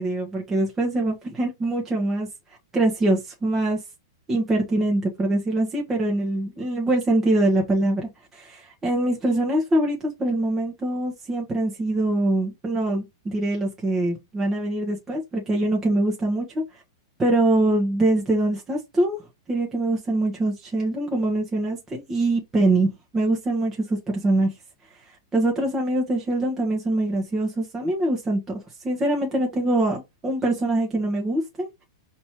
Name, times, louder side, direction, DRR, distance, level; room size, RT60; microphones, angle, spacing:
voice 1, 0.0-2.3 2.7-3.8 4.3-16.6 17.2-19.2 19.5-24.5 25.3-31.7, right 2 dB, 15° right, 1.3 m, -23 dB
5.3 x 2.9 x 3.1 m
hypercardioid pair, 145°, 2 cm